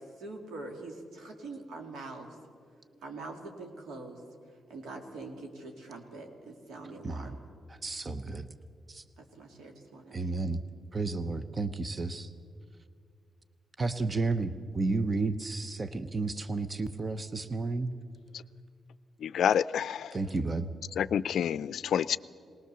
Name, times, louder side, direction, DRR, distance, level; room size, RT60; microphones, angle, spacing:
voice 1, 0.2-2.3 3.0-4.2 4.7-7.4 9.2-10.3, right 2 dB, 85° right, 2 dB, 2.7 m, -44 dB
voice 2, 7.0-7.4 7.7-8.5 8.9-9.0 10.1-10.6 10.9-12.3 13.8-17.9 20.1-20.7, right 3 dB, 35° right, 12 dB, 0.8 m, -32 dB
voice 3, 19.2-20.2 21.0-22.2, left 9 dB, 75° left, 17 dB, 0.4 m, -28 dB
19.5 x 19.5 x 6.9 m, 2.3 s
cardioid pair, 70°, 0 cm